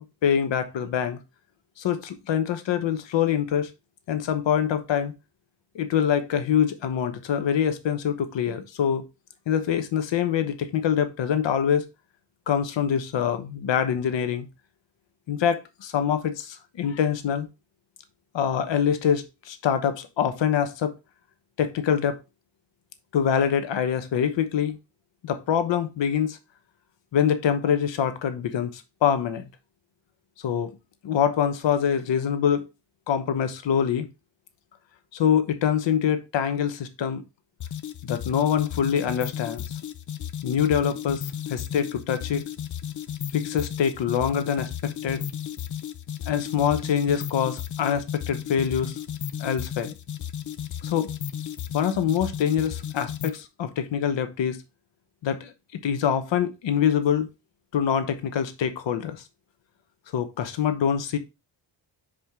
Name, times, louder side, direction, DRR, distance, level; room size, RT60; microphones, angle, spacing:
voice 1, 0.2-1.2 1.8-3.7 4.1-5.1 5.7-9.0 9.5-11.8 12.5-14.5 15.3-17.5 18.3-20.9 21.6-22.2 23.1-24.8 25.2-26.4 27.1-29.4 30.4-30.7 31.0-32.7 33.1-34.1 35.1-37.2 38.0-39.6 40.4-42.4 43.3-45.2 46.3-49.0 49.4-49.9 50.8-51.1 51.7-54.6 55.2-55.5 55.8-57.3 57.7-59.2 60.1-61.2, left 8 dB, 90° left, 1.1 m, -25 dB
sound 1, 37.6-53.5, left 9 dB, 45° left, 0.5 m, -34 dB
5.9 x 5.0 x 3.6 m
wide cardioid pair, 130°, 43 cm